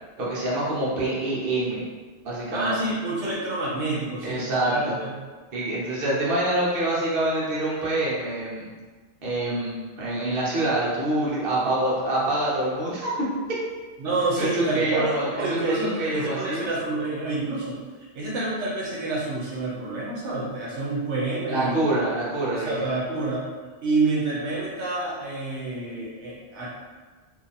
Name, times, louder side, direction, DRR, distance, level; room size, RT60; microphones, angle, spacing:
voice 1, 0.2-1.8 2.2-2.8 4.2-4.9 5.5-8.7 9.2-13.6 14.4-16.7 21.5-22.8, right 1 dB, 55° right, -6 dB, 1.1 m, -26 dB
voice 2, 2.5-5.2 14.0-17.8 18.1-21.8 22.5-23.4 23.8-26.7, right 2 dB, 80° right, -6 dB, 1.0 m, -28 dB
2.8 x 2.5 x 3.9 m, 1.4 s
omnidirectional pair, 1.2 m